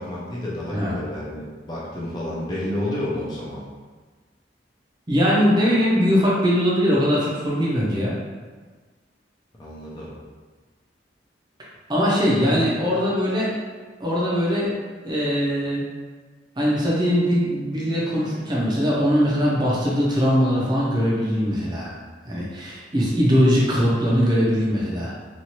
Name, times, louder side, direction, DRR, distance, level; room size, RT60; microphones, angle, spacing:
voice 1, 0.0-3.6 9.6-10.1 12.4-12.6, left 1 dB, 25° left, -6 dB, 0.5 m, -30 dB
voice 2, 5.1-8.1 11.9-13.5 14.0-14.8 15.0-15.9 16.6-22.0 22.2-25.1, equal, 25° right, -6 dB, 0.6 m, -21 dB
3.0 x 2.4 x 2.8 m, 1.4 s
head